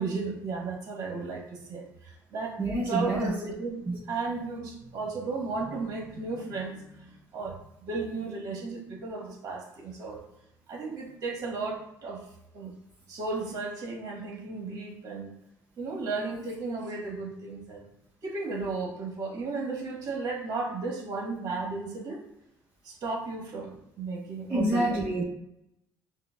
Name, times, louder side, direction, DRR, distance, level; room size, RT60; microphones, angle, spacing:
voice 1, 0.0-2.6 2.9-10.2 10.7-12.2 12.5-12.7 13.1-15.3 15.8-17.8 18.2-22.2 22.8-25.2, right 3 dB, 50° right, -2 dB, 1.2 m, -34 dB
voice 2, 2.6-3.3 3.9-4.0 24.5-25.2, right 1 dB, 30° right, -8 dB, 1.1 m, -27 dB
5.6 x 2.1 x 2.2 m, 0.80 s
cardioid pair, 105°, 8 cm